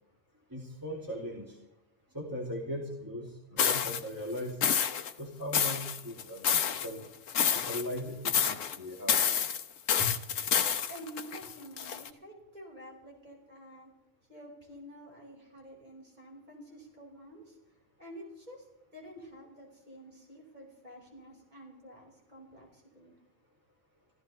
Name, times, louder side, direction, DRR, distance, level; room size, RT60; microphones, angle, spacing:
voice 1, 0.5-1.6 2.1-4.6 5.2-7.1 7.5-9.2 10.0-10.2, left 1 dB, 15° right, -3 dB, 2.6 m, -39 dB
sound 1, 3.6-4.0 4.6-5.1 5.5-6.9 7.3-8.0 8.2-8.8 9.1-12.1, left 8 dB, 85° left, 1.3 m, -28 dB
voice 2, 10.9-13.9 14.3-17.6 18.0-18.7 18.9-23.1, equal, 35° right, -2 dB, 5.4 m, -49 dB
25.0 x 15.0 x 3.3 m, 0.89 s
omnidirectional pair, 1.3 m